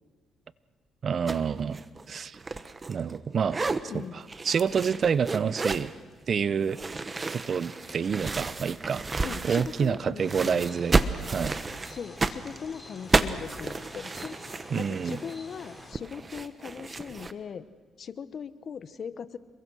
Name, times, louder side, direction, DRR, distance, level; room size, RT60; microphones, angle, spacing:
voice 1, 1.0-2.4 2.9-3.6 3.9-5.9 6.3-6.8 7.3-9.0 9.4-11.6 14.7-15.2, right 6 dB, 50° right, 18 dB, 0.7 m, -28 dB
sound 1, 1.3-1.5 1.7-3.2 3.4-3.8 4.3-5.9 6.7-10.0 10.3-17.3, right 3 dB, 30° right, 1.2 m, -31 dB
voice 2, 3.9-4.2 9.2-10.6 11.9-14.4 14.7-17.7 18.0-19.4, left 7 dB, 55° left, 15 dB, 1.1 m, -39 dB
sound 2, 10.2-15.9, left 2 dB, 15° left, 4.0 m, -48 dB
27.5 x 22.5 x 6.4 m, 1.3 s
cardioid pair, 90°, 0 cm